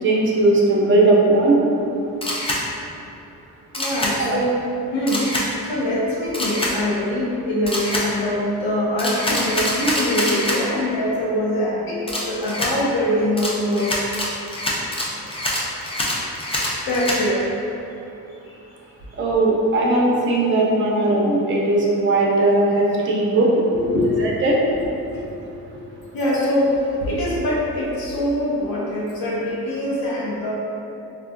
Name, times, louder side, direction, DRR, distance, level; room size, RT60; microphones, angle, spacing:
voice 1, 0.0-1.6 4.2-4.4 19.2-23.6 24.2-24.6, right 2 dB, 35° right, -3 dB, 0.6 m, -18 dB
Camera, 2.2-2.6 3.7-4.1 5.1-5.5 6.3-6.7 7.7-8.1 9.0-10.6 12.1-12.7 13.4-17.2, left 1 dB, 15° left, 0.4 m, -25 dB
voice 2, 3.7-4.5 4.9-14.2 15.1-15.4 16.8-17.5 18.4-18.5 23.7-24.2 25.1-25.5 25.7-25.8 26.1-30.5, left 1 dB, 75° left, -5 dB, 0.6 m, -23 dB
3.5 x 2.2 x 2.5 m, 2.8 s
cardioid pair, 100°, 36 cm